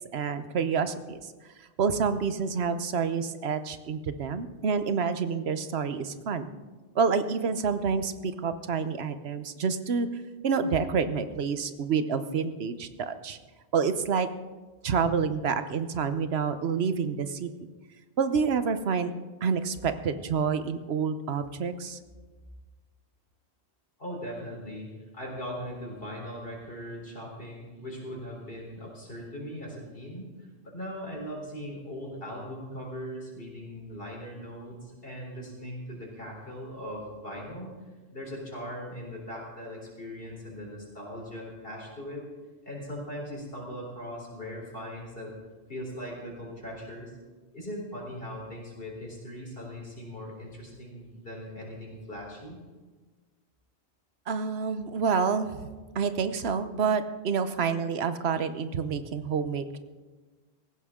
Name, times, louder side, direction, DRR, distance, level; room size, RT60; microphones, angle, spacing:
voice 1, 0.1-1.2 1.8-6.5 6.9-10.1 10.4-13.4 13.7-14.3 14.8-17.5 18.2-19.1 19.4-22.0 54.3-55.6 55.9-59.8, right 6 dB, 70° right, 11 dB, 1.1 m, -28 dB
voice 2, 24.0-37.7 38.1-42.3 42.6-45.4 45.7-47.1 47.5-52.6, equal, 55° left, -1 dB, 4.0 m, -39 dB
17.5 x 15.5 x 3.7 m, 1.3 s
omnidirectional pair, 1.1 m